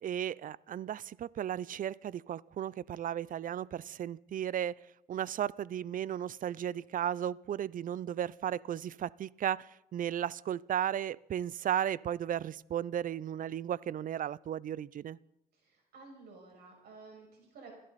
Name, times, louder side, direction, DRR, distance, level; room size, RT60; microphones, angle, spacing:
voice 1, 0.0-4.8 5.1-15.2, right 10 dB, 55° right, 23 dB, 0.5 m, -35 dB
voice 2, 15.5-17.7, right 4 dB, 75° right, 0 dB, 6.4 m, -53 dB
29.5 x 11.0 x 4.2 m, 0.83 s
supercardioid pair, 55°, 17 cm